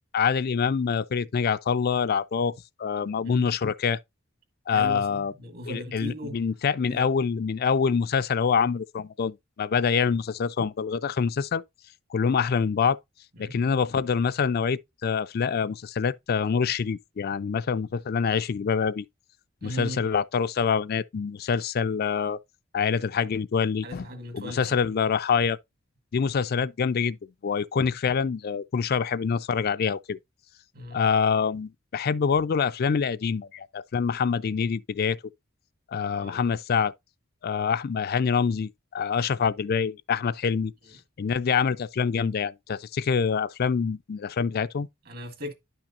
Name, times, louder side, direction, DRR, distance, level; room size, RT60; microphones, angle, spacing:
voice 1, 0.1-2.5 2.8-4.0 4.7-5.3 5.6-11.6 12.1-13.0 13.4-19.0 19.6-22.4 22.7-24.1 24.3-25.6 26.1-27.2 27.4-30.2 30.9-35.2 35.9-36.9 37.4-40.7 41.2-44.9, left 6 dB, 50° left, 0.4 m, -25 dB
voice 2, 4.7-6.4 6.9-7.1 13.4-13.6 19.6-20.1 23.8-24.8 30.7-31.1 36.2-36.5 45.1-45.5, right 1 dB, 50° right, 2.0 m, -38 dB
11.0 x 5.9 x 2.5 m
head